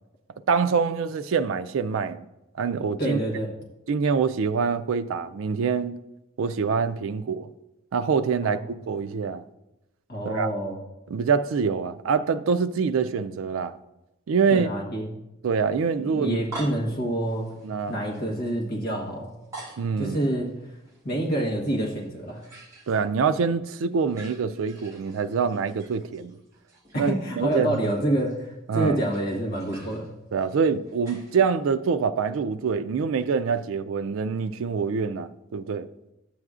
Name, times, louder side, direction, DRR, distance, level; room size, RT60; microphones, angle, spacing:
voice 1, 0.5-2.2 2.6-3.2 3.9-5.9 6.4-7.5 7.9-9.4 10.2-10.5 11.1-13.8 14.3-14.7 15.4-16.4 17.6-18.0 19.8-20.2 22.9-26.4 26.9-27.8 28.7-29.0 30.3-35.9, right 5 dB, 75° right, 0.4 m, -25 dB
voice 2, 3.0-3.5 10.1-10.8 14.5-15.1 16.0-17.5 17.9-19.3 20.0-20.5 21.0-22.4 26.9-30.1, right 1 dB, 45° left, 1.2 m, -27 dB
sound 1, 15.9-23.5 23.7-31.7, right 2 dB, 15° right, 1.5 m, -47 dB
13.0 x 7.8 x 2.4 m
head